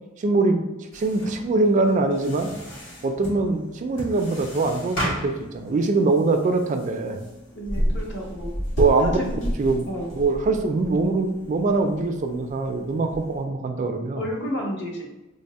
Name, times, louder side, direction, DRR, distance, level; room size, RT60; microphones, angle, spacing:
voice 1, 0.2-0.6 0.9-2.5 3.0-7.2 8.8-9.2 9.6-9.8 10.1-14.2, right 3 dB, 40° right, 6 dB, 0.3 m, -23 dB
sound 1, 0.9-13.4, equal, 80° left, 1.3 m, -33 dB
voice 2, 7.6-8.5 9.0-9.4 9.9-10.1 14.2-15.0, equal, 60° left, -2 dB, 0.9 m, -31 dB
3.4 x 2.0 x 4.0 m, 1.0 s
head